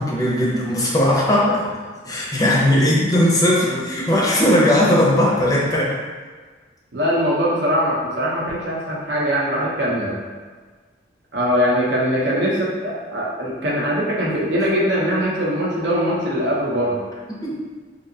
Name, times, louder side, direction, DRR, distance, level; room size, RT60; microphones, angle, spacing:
voice 1, 0.0-1.8 2.0-5.9 17.3-17.5, left 1 dB, 20° left, -4 dB, 0.5 m, -18 dB
voice 2, 6.9-10.2 11.3-17.0, equal, 70° right, -4 dB, 0.7 m, -21 dB
3.3 x 2.6 x 2.7 m, 1.4 s
head